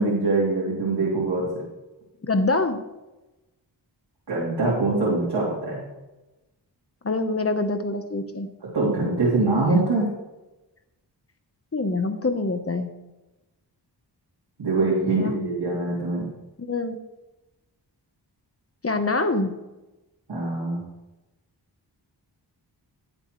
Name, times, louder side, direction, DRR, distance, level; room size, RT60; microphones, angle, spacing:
voice 1, 0.0-1.5 4.3-5.8 8.6-10.1 14.6-16.3 20.3-20.8, right 2 dB, 70° right, -6 dB, 3.1 m, -23 dB
voice 2, 2.2-2.8 7.0-8.5 11.7-12.9 15.0-15.5 16.6-17.0 18.8-19.5, left 3 dB, 35° left, 8 dB, 1.0 m, -25 dB
14.5 x 7.8 x 3.2 m, 1.0 s
cardioid pair, 60°, 42 cm